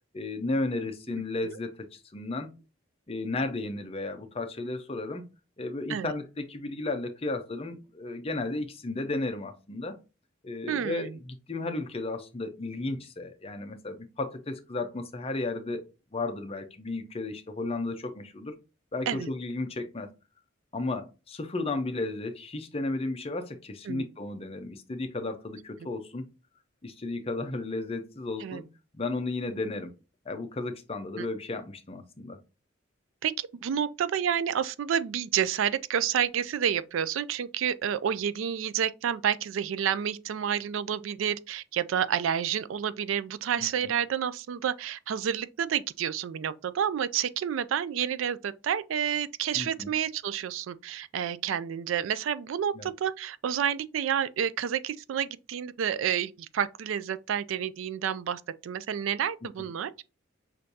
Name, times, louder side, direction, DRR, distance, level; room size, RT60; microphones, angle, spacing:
voice 1, 0.1-2.5 3.1-5.2 5.6-10.0 10.4-15.8 16.1-18.5 18.9-20.1 20.7-26.3 26.8-28.7 28.9-29.9 30.3-32.4 43.6-43.9 49.5-49.9 52.7-52.9 59.6-59.7, left 2 dB, 30° left, 0.6 m, -34 dB
voice 2, 10.7-11.2 19.1-19.3 23.9-24.0 28.4-28.6 31.2-31.3 33.2-59.9, right 8 dB, 75° right, 0.3 m, -29 dB
6.3 x 2.6 x 2.7 m
head